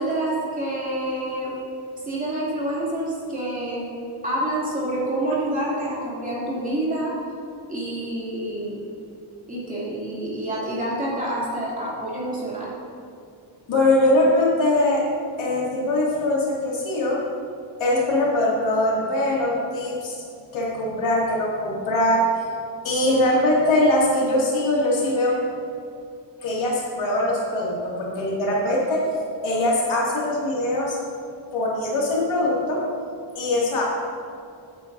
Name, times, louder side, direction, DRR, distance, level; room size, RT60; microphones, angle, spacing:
voice 1, 0.0-1.5 2.0-3.8 4.2-7.2 7.7-8.8 9.5-12.7, right 1 dB, 15° right, -7 dB, 2.8 m, -27 dB
voice 2, 13.7-15.0 15.4-17.2 17.8-20.2 20.5-22.3 22.8-25.4 26.4-29.1 29.4-31.0 31.5-32.8 33.3-33.8, left 1 dB, 75° left, -4 dB, 2.5 m, -22 dB
15.5 x 9.1 x 2.7 m, 2.5 s
wide cardioid pair, 175°, 48 cm